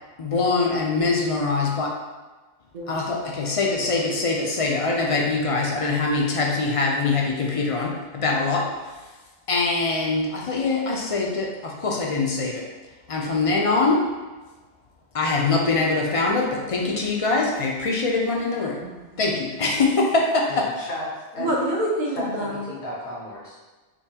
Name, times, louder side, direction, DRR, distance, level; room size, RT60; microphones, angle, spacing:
voice 1, 0.2-1.9 2.9-9.1 9.5-12.7 13.1-14.2 15.1-18.9 19.2-20.4, left 3 dB, 45° left, -1 dB, 0.5 m, -23 dB
voice 2, 18.7-19.1 21.4-22.7, right 1 dB, 50° right, -3 dB, 0.8 m, -27 dB
voice 3, 20.5-21.1 21.3-21.5 22.1-22.3 22.7-23.6, left 1 dB, 85° left, -6 dB, 1.2 m, -33 dB
5.0 x 2.3 x 2.8 m, 1.3 s
omnidirectional pair, 1.1 m